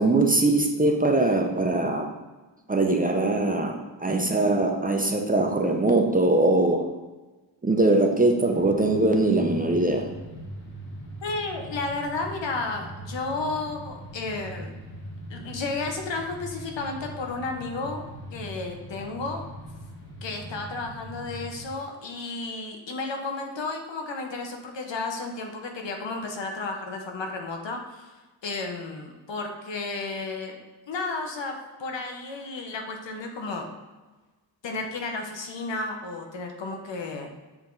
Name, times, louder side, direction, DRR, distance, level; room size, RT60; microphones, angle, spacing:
voice 1, 0.0-2.1 2.7-6.9 7.6-10.1, right 2 dB, 20° right, 2 dB, 0.6 m, -22 dB
sound 1, 8.4-21.7, right 1 dB, 55° left, 1.9 m, -41 dB
voice 2, 11.2-14.7 15.3-18.0 18.3-19.4 20.2-28.1 28.4-30.6 30.9-31.5 31.8-33.7 34.6-37.4, left 3 dB, 70° left, 3 dB, 1.1 m, -32 dB
7.3 x 3.5 x 3.9 m, 1.2 s
wide cardioid pair, 95°, 46 cm